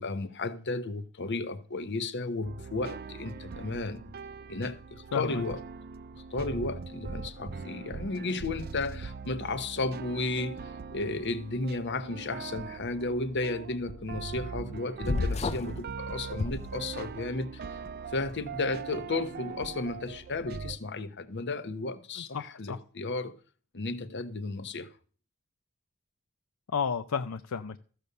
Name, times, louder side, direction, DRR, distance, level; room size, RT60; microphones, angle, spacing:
voice 1, 0.0-4.0 4.5-5.6 6.1-17.8 18.1-23.3 23.7-24.9, left 3 dB, 55° left, 1.0 m, -34 dB
sound 1, 2.4-20.8, right 5 dB, 45° right, 0.5 m, -41 dB
voice 2, 5.1-5.4 22.2-22.8 26.7-27.8, left 6 dB, 80° left, 0.6 m, -32 dB
sound 2, 15.1-15.8 16.3-17.3, left 3 dB, 30° left, 0.5 m, -31 dB
14.0 x 6.8 x 6.7 m
head